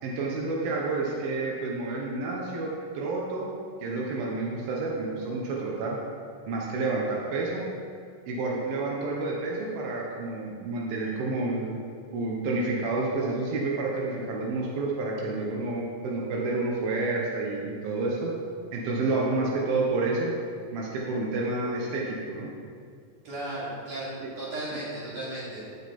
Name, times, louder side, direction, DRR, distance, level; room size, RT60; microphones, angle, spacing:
voice 1, 0.0-3.5 3.8-6.0 6.5-7.6 8.3-11.7 12.1-18.3 18.7-20.3 20.7-22.5 24.2-24.3, right 3 dB, 85° right, -3 dB, 3.0 m, -29 dB
voice 2, 23.2-24.1 24.4-25.7, right 1 dB, 50° right, -8 dB, 4.1 m, -35 dB
12.0 x 8.0 x 4.3 m, 2.2 s
omnidirectional pair, 4.1 m